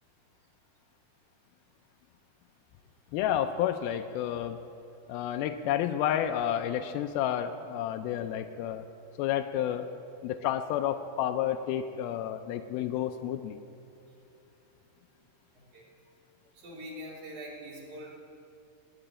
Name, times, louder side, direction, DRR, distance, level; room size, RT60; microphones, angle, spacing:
voice 1, 3.1-4.6 5.1-8.9 9.2-9.9 10.2-13.6, left 10 dB, 90° left, 7 dB, 2.5 m, -30 dB
voice 2, 16.5-18.1, equal, 55° right, -3 dB, 4.3 m, -43 dB
20.5 x 7.9 x 8.9 m, 2.8 s
omnidirectional pair, 4.2 m